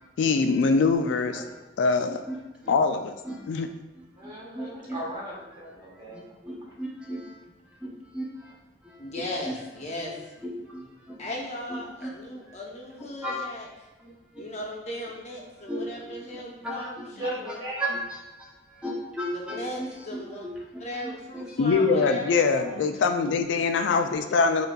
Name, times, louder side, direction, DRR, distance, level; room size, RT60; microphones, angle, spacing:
voice 1, 0.2-1.4 1.8-2.2 2.7-3.2 3.5-3.7 21.6-24.7, left 4 dB, 85° left, 8 dB, 0.3 m, -23 dB
voice 2, 1.0-1.4 2.3-2.4 2.6-2.7 3.2-3.5 4.2-5.0 6.1-7.4 7.8-8.5 8.8-9.5 10.4-11.2 11.7-12.4 13.2-13.4 14.0-14.4 15.7-17.1 17.8-18.0 18.4-22.1 23.2-23.3 23.8-24.2, equal, 5° right, -4 dB, 0.8 m, -37 dB
voice 3, 4.2-6.3 16.8-17.9 22.5-22.7, right 1 dB, 25° right, -5 dB, 1.1 m, -37 dB
voice 4, 9.0-10.2 11.2-13.7 14.4-17.4 19.3-20.4 20.8-22.5, left 1 dB, 40° left, -1 dB, 0.6 m, -37 dB
6.5 x 2.5 x 2.2 m, 1.1 s
head